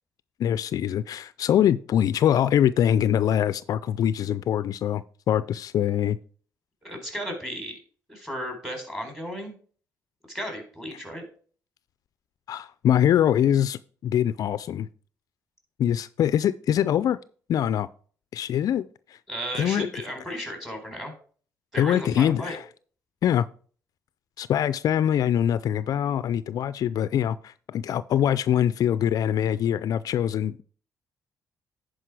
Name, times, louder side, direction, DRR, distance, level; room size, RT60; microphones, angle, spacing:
voice 1, 0.4-6.2 12.5-14.9 15.8-17.2 17.5-17.9 18.3-19.2 19.5-19.9 20.3-20.4 21.8-22.6 23.2-23.5 24.4-30.6, left 10 dB, 65° left, 0.4 m, -23 dB
voice 2, 6.8-7.8 8.1-9.5 10.3-11.2 19.3-21.1 21.7-22.6, equal, 5° right, 4.0 m, -34 dB
10.0 x 5.0 x 4.7 m
supercardioid pair, 65°, 7 cm